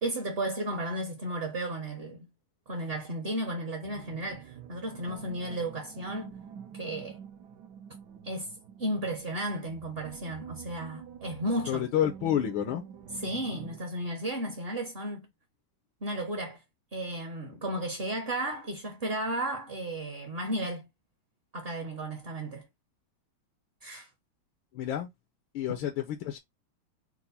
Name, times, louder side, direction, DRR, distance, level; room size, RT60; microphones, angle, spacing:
voice 1, 0.0-2.3 2.7-6.3 6.7-7.2 8.2-8.5 8.8-11.9 13.1-15.3 16.0-16.6 16.9-20.9 21.5-22.7 23.8-24.1, right 1 dB, 40° right, 0.9 m, -34 dB
sound 1, 3.8-13.8, right 8 dB, 65° right, 1.1 m, -47 dB
voice 2, 11.7-12.8 24.7-25.1 25.5-26.4, left 10 dB, 80° left, 1.6 m, -29 dB
4.7 x 2.2 x 4.1 m
omnidirectional pair, 2.2 m